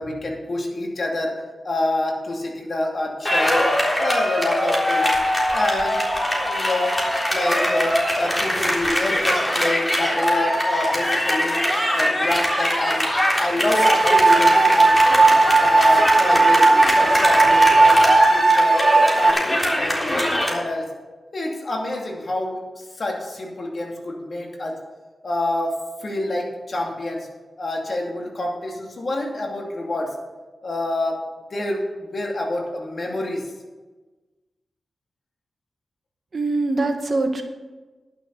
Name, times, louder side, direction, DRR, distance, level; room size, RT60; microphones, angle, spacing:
voice 1, 0.0-1.3 1.6-3.7 4.0-5.1 5.5-6.0 6.4-6.9 7.3-11.6 11.9-13.1 13.4-15.0 15.6-16.7 17.0-18.8 19.1-20.9 21.3-24.8 25.2-27.3 27.6-30.1 30.6-31.2 31.5-33.4, left 2 dB, 60° left, 0 dB, 2.6 m, -27 dB
sound 1, 3.2-20.5, left 1 dB, 20° left, 3.6 m, -22 dB
sound 2, 13.7-19.3, right 3 dB, 40° right, 0.8 m, -16 dB
voice 2, 36.3-37.4, right 2 dB, 60° right, 4 dB, 1.5 m, -23 dB
11.0 x 6.7 x 6.6 m, 1.2 s
cardioid pair, 40°, 0 cm